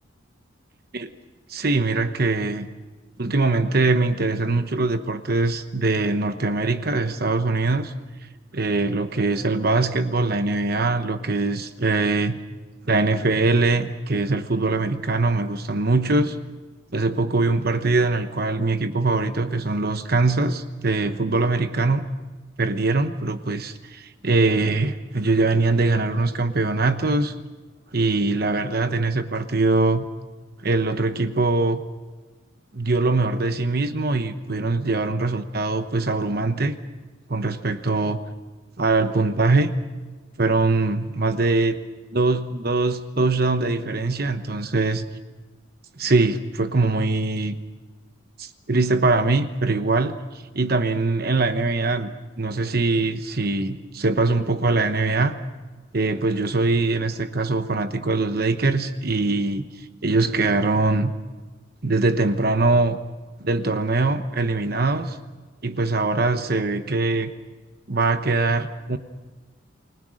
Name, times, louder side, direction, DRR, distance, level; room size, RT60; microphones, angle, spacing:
voice 1, 1.5-2.7 3.2-7.9 8.5-12.4 12.9-16.4 16.9-22.0 22.6-27.3 27.9-30.0 30.6-31.8 32.7-36.8 37.3-38.2 38.8-39.7 40.4-41.8 42.1-45.0 46.0-47.6 48.4-50.1 50.5-52.1 52.4-55.3 55.9-61.1 61.8-63.0 63.4-65.2 65.6-67.3 67.9-69.0, right 3 dB, 50° right, 9 dB, 1.0 m, -22 dB
29.5 x 21.0 x 6.4 m, 1.3 s
head